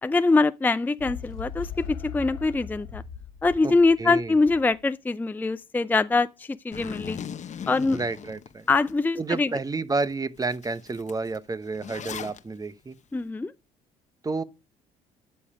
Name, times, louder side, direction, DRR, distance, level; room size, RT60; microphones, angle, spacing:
voice 1, 0.0-3.0 3.4-7.2 7.7-8.0 8.7-9.5 13.1-13.5, left 3 dB, 10° left, 0.5 m, -23 dB
sound 1, 1.0-4.8, left 7 dB, 85° left, 1.4 m, -39 dB
voice 2, 3.6-4.4 7.9-8.7 9.2-13.0 14.2-14.4, right 3 dB, 20° right, 1.0 m, -30 dB
Zipper (clothing), 6.7-8.9 9.4-9.5 10.0-10.1 10.4-12.4, left 8 dB, 40° left, 0.9 m, -38 dB
12.5 x 7.0 x 4.9 m
hypercardioid pair, 60°, 18 cm